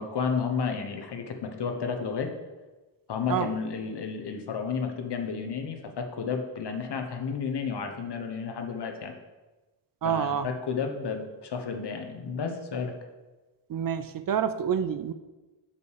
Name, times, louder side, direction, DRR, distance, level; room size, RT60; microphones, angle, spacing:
voice 1, 0.0-2.3 3.1-9.1 10.0-12.9, left 5 dB, 65° left, 5 dB, 1.1 m, -32 dB
voice 2, 10.0-10.5 13.7-15.1, right 8 dB, 50° right, 13 dB, 0.5 m, -28 dB
6.9 x 5.5 x 4.9 m, 1.2 s
wide cardioid pair, 105°, 44 cm